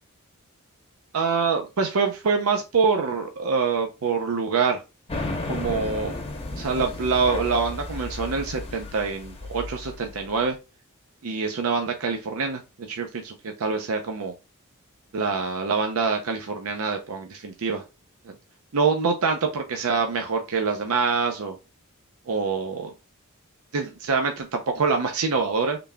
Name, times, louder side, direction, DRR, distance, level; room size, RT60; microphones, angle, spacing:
voice 1, 1.1-4.8 5.5-6.1 6.5-10.6 11.2-14.3 15.1-17.8 18.3-18.4 18.7-21.6 22.3-22.9 23.7-25.8, right 5 dB, 70° right, 4 dB, 0.5 m, -25 dB
sound 1, 5.1-10.4, left 2 dB, 25° left, 0.8 m, -33 dB
3.9 x 3.4 x 2.2 m, 0.27 s
head